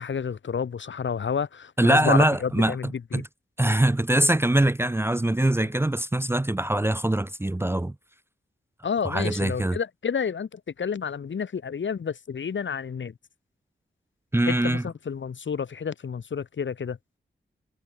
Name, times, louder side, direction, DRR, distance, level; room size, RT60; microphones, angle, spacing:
voice 1, 0.0-3.2 8.8-13.1 14.5-17.0, left 6 dB, 65° left, 1.6 m, -30 dB
voice 2, 1.8-3.3 3.6-7.9 9.0-9.8 14.3-14.8, right 1 dB, 10° right, 0.6 m, -23 dB
wide cardioid pair, 95°, 21 cm